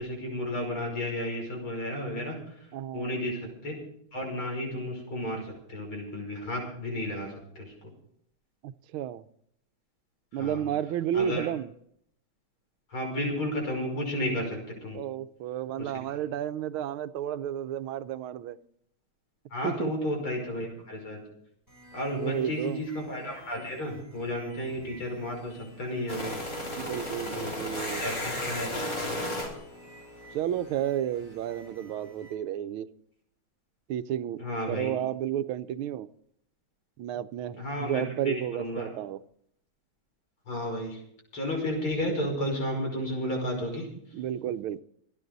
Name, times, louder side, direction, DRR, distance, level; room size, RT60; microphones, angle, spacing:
voice 1, 0.0-2.7 2.9-3.8 4.1-7.7 10.3-10.7 11.1-11.5 12.9-15.0 15.8-16.2 19.5-21.2 21.9-26.4 27.3-27.5 28.0-29.2 34.4-34.9 37.6-38.9 40.5-41.0 41.3-43.9, left 1 dB, 85° left, 1 dB, 6.4 m, -33 dB
voice 2, 2.7-3.1 8.6-9.2 10.3-11.7 14.9-18.6 19.6-19.9 22.1-22.8 26.8-28.1 30.3-32.9 33.9-34.4 34.7-36.1 37.0-39.2 44.1-44.8, right 10 dB, 85° right, 13 dB, 1.6 m, -32 dB
sound 1, 21.7-32.3, right 1 dB, 10° left, 6.5 m, -53 dB
sound 2, 26.1-30.9, left 1 dB, 45° left, 4.1 m, -35 dB
27.0 x 9.9 x 4.0 m, 0.69 s
omnidirectional pair, 2.3 m